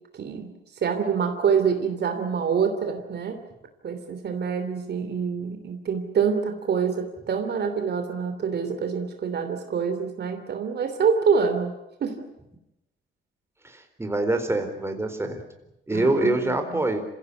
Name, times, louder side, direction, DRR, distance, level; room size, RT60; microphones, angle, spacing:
voice 1, 0.1-3.4 3.8-12.2 15.9-16.8, right 6 dB, 55° right, 7 dB, 3.1 m, -26 dB
voice 2, 13.6-15.4 15.9-17.0, right 2 dB, 15° right, 6 dB, 4.2 m, -25 dB
26.5 x 16.5 x 9.8 m, 0.90 s
cardioid pair, 90°, 20 cm